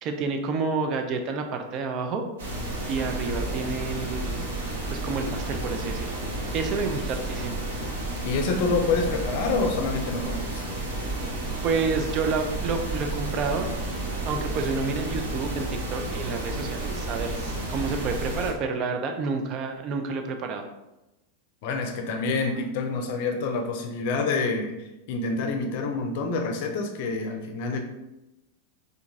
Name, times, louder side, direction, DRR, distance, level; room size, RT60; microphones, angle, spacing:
voice 1, 0.0-2.3 2.9-4.4 4.9-6.1 6.5-7.6 11.6-13.7 14.2-20.7, right 4 dB, 35° right, 5 dB, 0.4 m, -29 dB
sound 1, 2.4-18.5, right 2 dB, 60° right, 0.8 m, -31 dB
voice 2, 8.2-10.6 21.6-24.7 25.1-27.8, left 3 dB, 50° left, 4 dB, 0.5 m, -27 dB
3.7 x 2.6 x 2.4 m, 0.97 s
figure-of-eight pair, 90°, 0 cm